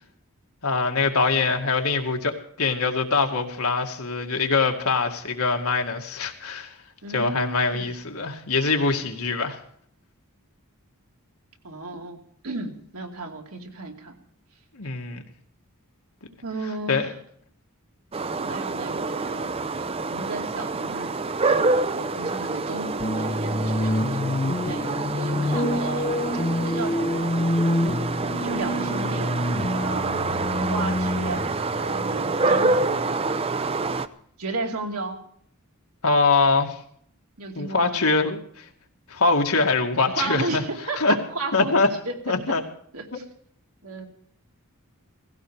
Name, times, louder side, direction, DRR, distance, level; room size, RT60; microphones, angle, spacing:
voice 1, 0.6-6.7 7.1-9.6 14.7-15.2 16.9-17.1 36.0-36.8 37.6-38.7 39.1-40.6 41.0-41.2 41.5-41.9 42.3-42.6, left 4 dB, 75° left, 3 dB, 2.1 m, -23 dB
voice 2, 7.0-7.9 11.6-14.2 16.4-17.1 18.4-19.8 20.1-21.2 21.4-26.1 26.6-27.3 28.1-29.4 29.7-31.5 31.8-33.2 34.4-35.2 37.4-38.0 40.1-41.7 42.1-42.2 42.9-43.2 43.8-44.1, right 2 dB, 80° right, 2 dB, 2.5 m, -34 dB
sound 1, 18.1-34.1, right 3 dB, 25° right, 0.6 m, -27 dB
sound 2, 23.0-32.9, left 1 dB, 30° left, 0.8 m, -27 dB
17.5 x 15.5 x 4.9 m, 0.62 s
head